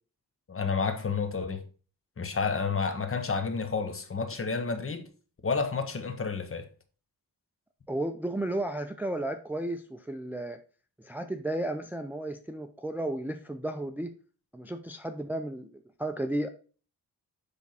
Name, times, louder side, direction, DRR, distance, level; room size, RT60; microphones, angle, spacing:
voice 1, 0.5-1.6 2.2-5.1 5.4-6.7, left 5 dB, 35° left, 1.1 m, -30 dB
voice 2, 7.9-10.6 11.0-14.1 14.5-16.5, right 1 dB, 5° right, 0.5 m, -33 dB
10.5 x 3.6 x 4.0 m
wide cardioid pair, 120°, 39 cm